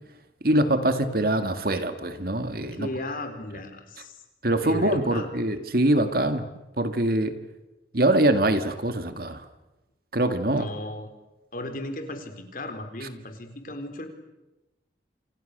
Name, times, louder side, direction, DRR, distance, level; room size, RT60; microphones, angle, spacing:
voice 1, 0.4-2.9 4.4-6.5 6.8-7.4 7.9-9.4 10.1-10.7 13.0-13.1, right 1 dB, 55° right, 9 dB, 1.9 m, -23 dB
voice 2, 2.7-4.2 4.5-5.3 10.5-11.1 11.5-14.1, left 1 dB, 50° left, 6 dB, 4.0 m, -35 dB
28.5 x 27.5 x 6.7 m, 1.0 s
head